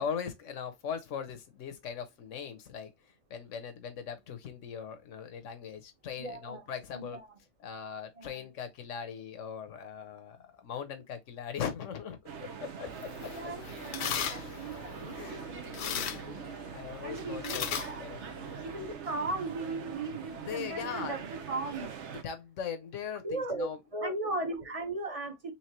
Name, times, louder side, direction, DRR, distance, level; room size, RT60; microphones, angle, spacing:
voice 1, 0.0-7.2 7.6-13.5 15.1-15.6 16.5-18.2 20.5-21.2 22.2-23.8, left 7 dB, 85° left, 1.2 m, -40 dB
voice 2, 6.2-6.6 6.9-7.4 8.2-8.5 13.3-16.5 17.0-18.0 18.6-21.9 23.2-25.5, right 2 dB, 30° right, 1.1 m, -37 dB
sound 1, 12.3-22.2, right 7 dB, 70° right, 1.1 m, -43 dB
sound 2, 12.9-18.9, left 9 dB, 65° left, 0.8 m, -39 dB
4.4 x 3.5 x 3.0 m
omnidirectional pair, 1.2 m